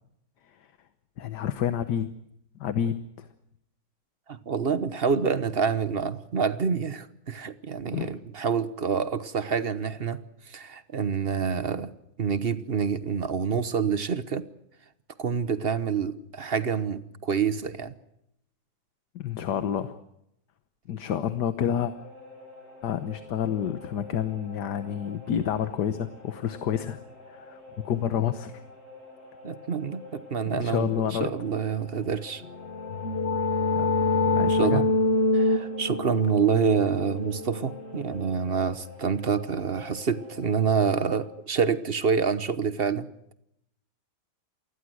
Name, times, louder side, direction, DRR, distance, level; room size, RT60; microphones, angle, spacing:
voice 1, 1.2-2.1 2.6-3.3 7.9-8.1 19.1-19.9 20.9-21.9 22.8-27.0 27.3-27.6 27.8-28.5 30.5-31.3 33.8-33.9 34.3-34.8, left 9 dB, 75° left, 1.7 m, -29 dB
voice 2, 4.3-10.2 10.5-11.9 12.2-14.5 15.2-17.9 29.4-32.4 34.4-34.9 35.3-43.1, right 6 dB, 40° right, 1.1 m, -27 dB
sound 1, 21.9-41.3, left 3 dB, 60° left, 8.6 m, -48 dB
sound 2, 32.5-38.1, left 2 dB, 40° left, 1.3 m, -26 dB
28.0 x 20.0 x 6.3 m
omnidirectional pair, 1.8 m